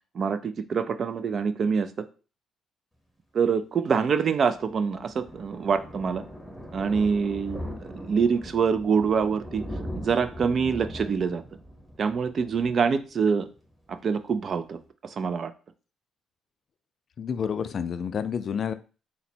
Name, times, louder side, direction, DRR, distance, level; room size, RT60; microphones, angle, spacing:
voice 1, 0.1-1.9 3.3-6.2 6.7-9.6 9.9-11.4 12.0-13.5 13.9-15.5, right 6 dB, 45° right, 11 dB, 0.4 m, -25 dB
Thunder, 4.2-13.6 13.9-14.1 14.4-14.5 14.7-14.8, equal, ahead, 0.9 m, -40 dB
voice 2, 17.2-18.7, left 7 dB, 50° left, 12 dB, 0.3 m, -29 dB
3.9 x 2.1 x 4.2 m, 0.35 s
cardioid pair, 105°, 0 cm